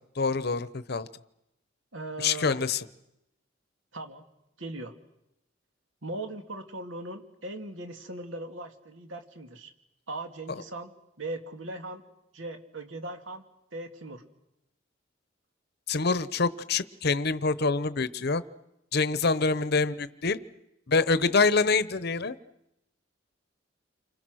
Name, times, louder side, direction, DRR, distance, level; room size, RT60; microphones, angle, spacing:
voice 1, 0.2-1.1 2.2-2.8 15.9-18.4 18.9-20.4 20.9-22.3, left 4 dB, 55° left, 15 dB, 0.9 m, -26 dB
voice 2, 1.9-2.7 3.9-4.3 4.6-4.9 6.0-9.7 10.1-12.0 12.3-13.4 13.7-14.2, right 2 dB, 80° right, 6 dB, 2.4 m, -39 dB
29.5 x 25.5 x 6.4 m, 0.85 s
head